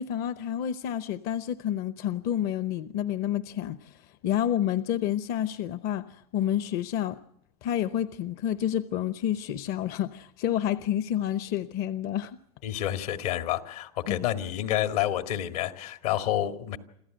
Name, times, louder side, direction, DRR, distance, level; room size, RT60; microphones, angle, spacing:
voice 1, 0.0-7.2 7.6-12.4 14.1-14.2, left 11 dB, 55° left, 14 dB, 0.8 m, -29 dB
voice 2, 12.6-16.8, left 12 dB, 80° left, 9 dB, 2.0 m, -29 dB
27.5 x 14.5 x 7.9 m, 0.78 s
supercardioid pair, 120°, 19 cm